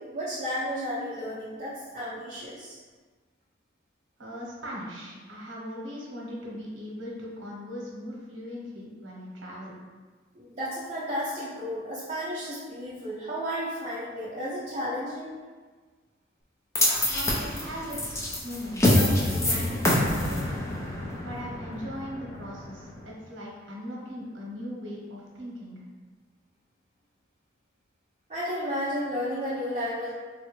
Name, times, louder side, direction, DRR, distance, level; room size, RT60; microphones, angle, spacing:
voice 1, 0.0-2.8 10.3-15.3 28.3-30.1, equal, 35° right, -9 dB, 0.6 m, -33 dB
voice 2, 4.2-9.7 17.1-20.6 21.2-25.7, equal, 80° right, -4 dB, 0.9 m, -39 dB
sound 1, 16.8-23.0, left 1 dB, 15° left, 0.4 m, -26 dB
3.7 x 2.2 x 3.0 m, 1.4 s
head